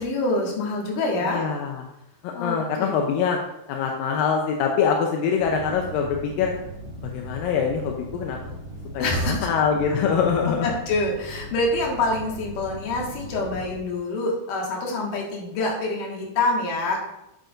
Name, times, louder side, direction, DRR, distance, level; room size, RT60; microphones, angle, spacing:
voice 1, 0.0-1.4 2.3-2.9 9.0-9.4 10.9-17.0, left 2 dB, 60° left, -1 dB, 3.1 m, -26 dB
voice 2, 1.2-1.8 2.2-3.4 3.7-6.5 7.0-8.6 8.9-10.7, left 6 dB, 80° left, 1 dB, 2.3 m, -24 dB
sound 1, 5.4-13.8, right 1 dB, 70° right, 0.6 m, -39 dB
9.2 x 8.8 x 2.6 m, 0.85 s
omnidirectional pair, 4.5 m